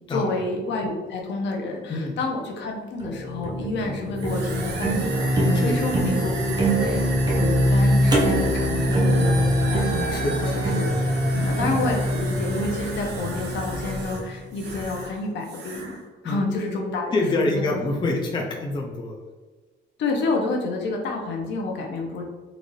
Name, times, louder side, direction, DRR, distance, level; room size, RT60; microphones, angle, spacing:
voice 1, 0.1-16.0 16.2-17.8 20.0-22.2, left 3 dB, 70° left, 1 dB, 0.8 m, -29 dB
sound 1, 3.0-14.2, equal, 20° right, 0.7 m, -24 dB
sound 2, 4.2-15.2 15.4-16.0, right 2 dB, 60° right, 0.9 m, -32 dB
voice 2, 17.1-19.2, left 2 dB, 25° left, 0 dB, 0.5 m, -26 dB
3.9 x 2.5 x 3.1 m, 1.3 s
cardioid pair, 145°, 19 cm